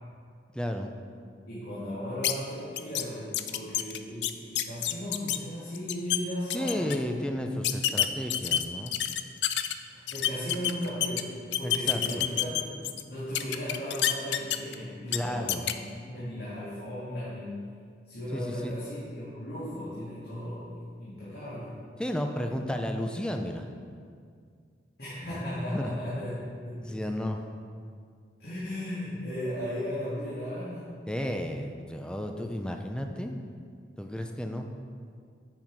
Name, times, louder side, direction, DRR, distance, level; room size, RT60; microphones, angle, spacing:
voice 1, 0.5-0.9 6.5-8.9 11.6-12.3 15.1-15.7 18.3-18.7 22.0-23.7 25.3-25.4 25.7-25.9 26.8-27.4 31.1-33.4 34.0-34.7, equal, 5° left, 4 dB, 0.5 m, -33 dB
voice 2, 1.5-7.4 9.6-17.6 18.1-21.8 25.0-27.1 28.4-30.9, equal, 65° left, -11 dB, 2.2 m, -36 dB
sound 1, 2.2-2.3 2.8-3.0 3.3-5.4 5.7-6.2 6.5-7.0 7.6-9.7 10.1-11.2 11.5-13.0 13.3-14.7 15.1-15.2 15.5-15.7, left 12 dB, 80° left, 0.4 m, -27 dB
8.9 x 5.8 x 4.7 m, 2.1 s
head